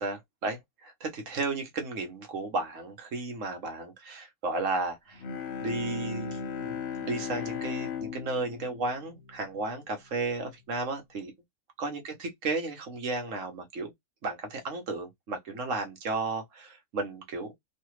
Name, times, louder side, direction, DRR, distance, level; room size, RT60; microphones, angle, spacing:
voice 1, 0.0-5.2 5.6-11.3 11.8-13.9 14.2-17.5, right 3 dB, 55° right, 1.3 m, -34 dB
Bowed string instrument, 5.1-10.0, left 5 dB, 60° left, 0.7 m, -37 dB
3.2 x 2.4 x 3.1 m
omnidirectional pair, 1.7 m